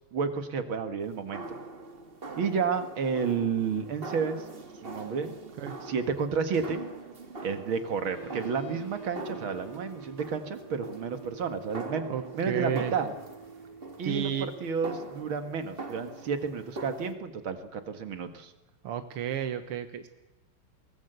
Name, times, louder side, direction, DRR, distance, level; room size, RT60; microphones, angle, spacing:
voice 1, 0.1-1.4 2.4-4.5 4.8-5.3 5.8-6.8 7.4-13.1 14.0-14.3 14.6-18.5, right 6 dB, 70° right, 8 dB, 2.4 m, -31 dB
sound 1, 1.0-17.1, right 3 dB, 30° right, 1.7 m, -43 dB
sound 2, 8.0-15.6, right 5 dB, 80° left, 7.3 m, -47 dB
voice 2, 12.1-12.9 14.0-14.5 18.8-20.1, right 9 dB, 85° right, 9 dB, 2.0 m, -32 dB
22.5 x 19.0 x 8.1 m, 1.1 s
omnidirectional pair, 2.4 m